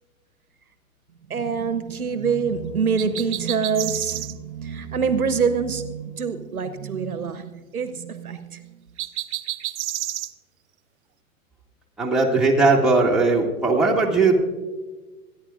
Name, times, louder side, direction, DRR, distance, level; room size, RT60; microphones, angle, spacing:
voice 1, 1.3-8.7, right 5 dB, 80° right, 11 dB, 1.1 m, -25 dB
sound 1, 3.0-4.3 9.0-10.3, right 14 dB, 50° right, 0.7 m, -30 dB
voice 2, 12.0-14.4, right 3 dB, ahead, -3 dB, 2.0 m, -18 dB
27.5 x 10.5 x 2.5 m, 1.3 s
figure-of-eight pair, 105°, 43 cm